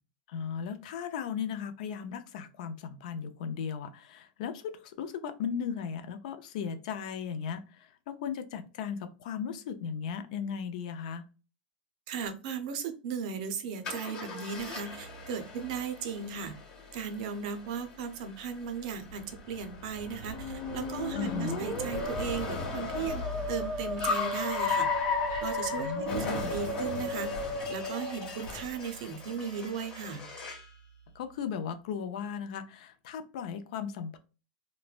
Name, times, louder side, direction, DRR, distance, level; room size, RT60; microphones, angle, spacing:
voice 1, 0.3-11.3 21.1-21.6 25.7-26.5 31.1-34.2, left 7 dB, 55° left, 9 dB, 0.4 m, -36 dB
voice 2, 12.1-16.5 16.9-24.9 25.4-27.3 27.7-30.2, right 6 dB, 50° right, 7 dB, 0.6 m, -36 dB
Car, 13.8-30.7, left 4 dB, 25° left, 1.2 m, -37 dB
Musical instrument, 20.2-29.0, left 1 dB, 5° right, 0.7 m, -36 dB
3.1 x 2.1 x 2.3 m, 0.33 s
supercardioid pair, 155°, 5 cm